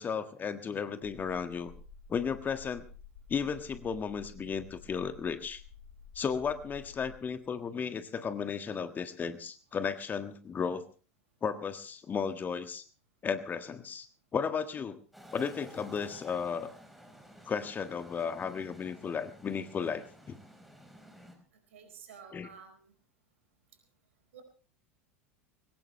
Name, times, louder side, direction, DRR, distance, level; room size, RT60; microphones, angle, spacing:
voice 1, 0.0-1.7 2.1-2.8 3.3-5.6 6.1-10.8 11.4-12.8 13.2-14.1 14.3-15.0 15.3-16.7 17.5-20.4 22.3-22.5, left 6 dB, 25° left, 9 dB, 1.6 m, -34 dB
sound 1, 1.0-7.5, left 5 dB, 55° left, 1.7 m, -52 dB
sound 2, 15.1-21.4, equal, ahead, 4.6 m, -53 dB
voice 2, 21.7-22.9 24.3-24.4, right 7 dB, 65° right, 6 dB, 4.6 m, -51 dB
21.5 x 18.5 x 3.2 m, 0.38 s
figure-of-eight pair, 80°, 7 cm